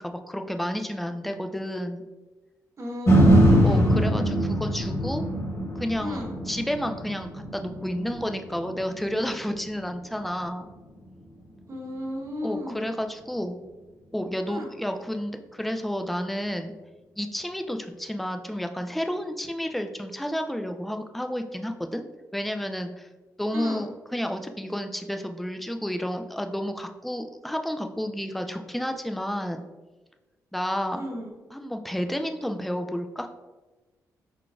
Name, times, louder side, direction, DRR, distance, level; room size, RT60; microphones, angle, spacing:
voice 1, 0.0-2.0 3.6-5.2 5.8-10.7 12.4-13.6 14.1-16.7 17.2-22.0 22.3-23.1 23.4-29.6 30.5-31.0 31.5-33.3, equal, ahead, 6 dB, 0.3 m, -31 dB
voice 2, 2.8-3.7 6.0-6.3 11.7-12.8 14.5-14.7 23.5-23.8 30.9-31.3, left 1 dB, 45° right, -1 dB, 1.1 m, -34 dB
sound 1, 3.1-11.2 11.7-11.8, equal, 45° left, 1.5 m, -23 dB
4.5 x 3.8 x 2.5 m, 1.2 s
cardioid pair, 85°, 7 cm